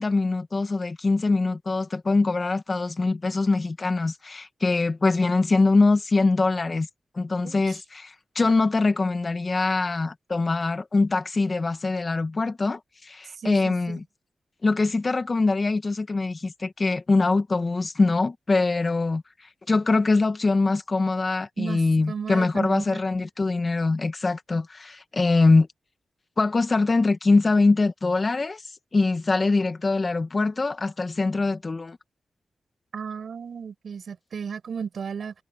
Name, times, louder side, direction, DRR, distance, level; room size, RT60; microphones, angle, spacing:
voice 1, 0.0-6.9 7.1-14.0 14.6-19.2 19.7-25.7 26.4-28.6 28.9-32.0, left 3 dB, 35° left, 1.7 m, -23 dB
voice 2, 7.4-7.8 13.4-14.0 21.6-21.8 22.1-23.0 32.9-35.3, right 6 dB, 70° right, 7.8 m, -34 dB
wide cardioid pair, 130°, 0 cm